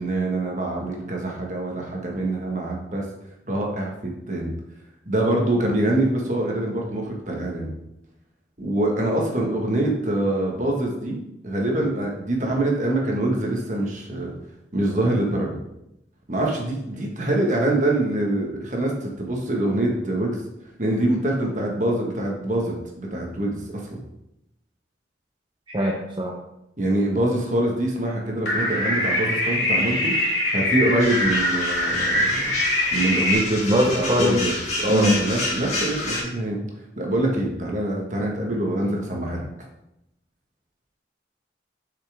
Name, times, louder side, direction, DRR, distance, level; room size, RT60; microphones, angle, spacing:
voice 1, 0.0-3.0 3.5-3.9 4.3-4.5 5.1-7.7 8.6-11.2 11.4-14.3 14.7-15.6 16.3-20.4 20.8-24.0 26.8-32.4 32.9-36.6 37.0-39.4, right 1 dB, 40° right, 0 dB, 1.5 m, -24 dB
voice 2, 25.7-26.3 33.6-34.4 34.9-35.2, equal, 25° right, -2 dB, 0.7 m, -22 dB
sound 1, 28.5-33.3, left 1 dB, 65° left, 2.7 m, -23 dB
sound 2, 31.0-36.2, left 2 dB, 40° left, 2.2 m, -29 dB
7.0 x 5.8 x 3.6 m, 0.85 s
head